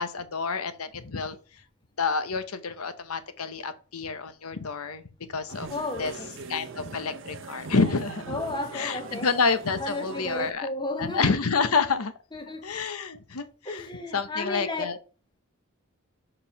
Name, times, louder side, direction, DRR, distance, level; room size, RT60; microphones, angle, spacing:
voice 1, 0.0-1.4 2.0-5.0 5.3-5.7 6.0-6.1 6.5-8.4 8.7-10.7 11.0-12.1 12.6-13.8 14.1-15.0, left 4 dB, 85° left, 0.9 m, -28 dB
sound 1, 5.5-10.5, right 4 dB, 55° right, 0.7 m, -41 dB
voice 2, 5.7-6.3 8.3-9.3 9.8-11.3 12.3-12.7 13.6-14.9, left 2 dB, 20° left, 1.0 m, -33 dB
5.4 x 4.8 x 5.3 m
head